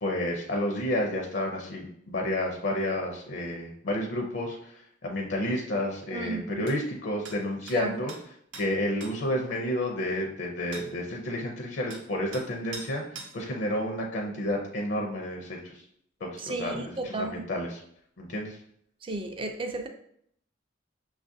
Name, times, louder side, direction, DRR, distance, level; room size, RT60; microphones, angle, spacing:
voice 1, 0.0-8.1 8.6-15.8 16.2-17.8 18.2-18.6, left 1 dB, 60° left, 0 dB, 0.5 m, -31 dB
voice 2, 6.1-6.7 7.7-8.0 16.4-17.5 19.0-19.9, right 2 dB, 25° right, 6 dB, 0.3 m, -33 dB
sound 1, 6.7-6.8 7.3-7.4 7.7-7.8 8.1-8.2 8.5-8.7 9.0-9.1 10.7-10.9 11.9-12.0 12.3-12.5 12.7-12.9 13.2-13.3, right 4 dB, 70° right, 0.6 m, -42 dB
5.9 x 2.4 x 2.6 m, 0.69 s
head